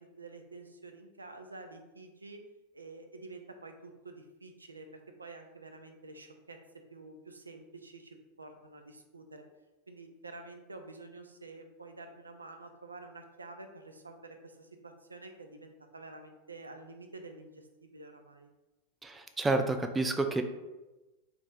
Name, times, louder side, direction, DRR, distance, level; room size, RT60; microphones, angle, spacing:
voice 1, 0.0-2.4 2.7-4.9 5.2-6.6 6.9-9.4 9.9-18.5, right 3 dB, 80° right, 5 dB, 0.4 m, -49 dB
voice 2, 19.0-20.4, right 2 dB, 10° right, 6 dB, 0.3 m, -29 dB
3.4 x 3.0 x 3.7 m, 1.1 s
figure-of-eight pair, 90°, 0 cm